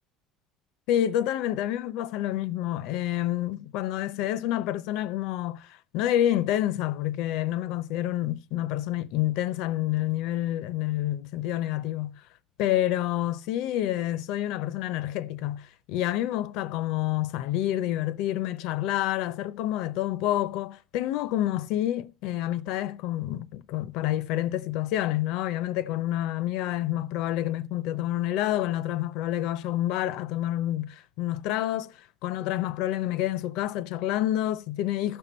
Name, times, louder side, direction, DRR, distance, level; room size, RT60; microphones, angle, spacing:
voice 1, 0.9-12.2 12.6-32.0 32.2-35.2, left 13 dB, 70° left, 0.5 m, -28 dB
14.0 x 5.3 x 4.1 m
cardioid pair, 140°, 0 cm